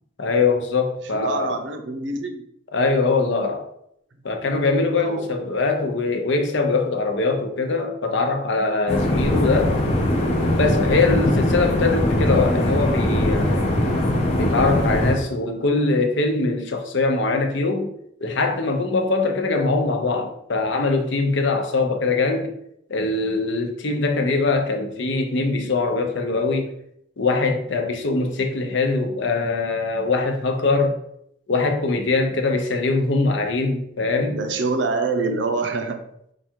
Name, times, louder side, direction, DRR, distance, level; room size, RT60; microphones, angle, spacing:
voice 1, 0.2-1.6 2.7-3.6 4.2-9.7 10.6-13.8 14.4-17.9 18.2-22.5 22.9-26.7 27.2-31.0 31.5-34.4, left 3 dB, 70° left, 0.7 m, -22 dB
voice 2, 1.0-2.4 5.0-5.4 24.2-24.6 34.3-36.1, right 3 dB, 65° right, 0.6 m, -26 dB
sound 1, 8.9-15.1, left 1 dB, 30° left, 0.7 m, -21 dB
4.8 x 2.4 x 4.4 m
head